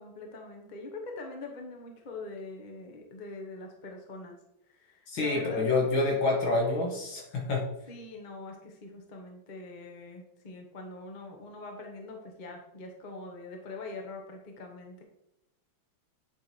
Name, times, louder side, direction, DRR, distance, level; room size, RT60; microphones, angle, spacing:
voice 1, 0.0-4.4 4.7-6.0 7.9-15.0, left 3 dB, 35° left, 2 dB, 0.8 m, -43 dB
voice 2, 5.1-7.6, left 2 dB, 70° left, -2 dB, 2.4 m, -27 dB
8.8 x 3.3 x 4.3 m, 0.82 s
omnidirectional pair, 2.2 m